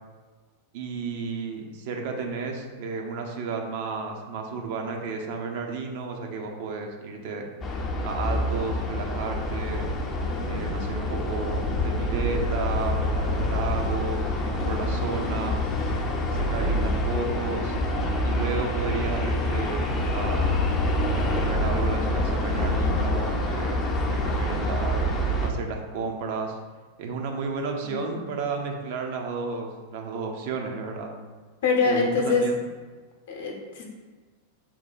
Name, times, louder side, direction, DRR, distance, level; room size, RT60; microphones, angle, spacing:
voice 1, 0.7-7.5 8.0-9.9 10.5-15.6 16.3-17.8 18.2-20.5 21.3-23.8 24.1-25.0 25.4-26.6 27.0-31.1 31.8-32.6, right 4 dB, 50° right, 2 dB, 0.6 m, -32 dB
sound 1, 7.6-25.5, left 1 dB, 25° left, 0.5 m, -26 dB
voice 2, 27.8-28.2 31.6-32.5 33.3-33.8, left 4 dB, 55° left, 0 dB, 0.8 m, -24 dB
3.7 x 2.2 x 4.4 m, 1.4 s
figure-of-eight pair, 90°, 0 cm